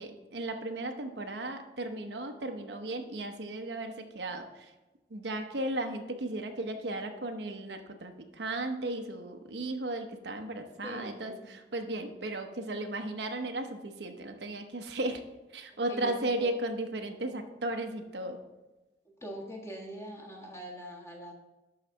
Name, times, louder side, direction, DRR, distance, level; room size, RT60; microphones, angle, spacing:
voice 1, 0.0-4.7 5.1-15.2 15.5-18.4, right 1 dB, 75° right, 6 dB, 0.9 m, -35 dB
voice 2, 10.8-11.5 15.9-16.5 19.0-21.3, equal, 15° left, 0 dB, 1.5 m, -43 dB
11.5 x 4.0 x 6.3 m, 1.1 s
head